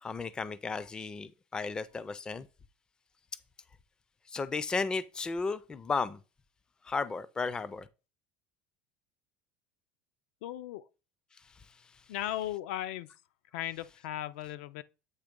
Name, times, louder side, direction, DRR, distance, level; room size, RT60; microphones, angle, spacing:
voice 1, 0.0-2.5 4.3-6.2 6.8-7.9, left 4 dB, 10° left, 0.3 m, -34 dB
voice 2, 10.4-10.9 12.1-13.1 13.5-14.8, left 13 dB, 80° left, 0.5 m, -37 dB
8.1 x 3.0 x 5.1 m
cardioid pair, 160°, 7 cm